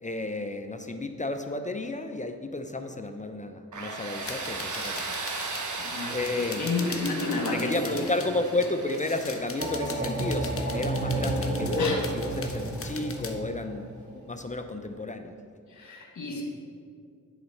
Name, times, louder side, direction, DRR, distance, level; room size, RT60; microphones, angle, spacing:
voice 1, 0.0-5.2 5.8-6.7 7.5-13.9 14.1-15.3, left 2 dB, 20° left, 7 dB, 0.6 m, -32 dB
Tools, 3.7-12.5, right 3 dB, 60° right, 1.1 m, -38 dB
sound 1, 4.2-8.3 8.6-13.3, left 4 dB, 40° left, 0.9 m, -41 dB
voice 2, 5.8-7.9 11.8-12.0 15.7-16.4, left 3 dB, 60° left, 0 dB, 1.6 m, -31 dB
sound 2, 9.6-14.6, right 2 dB, 35° right, 2.0 m, -31 dB
7.9 x 4.1 x 6.4 m, 2.3 s
supercardioid pair, 45°, 34 cm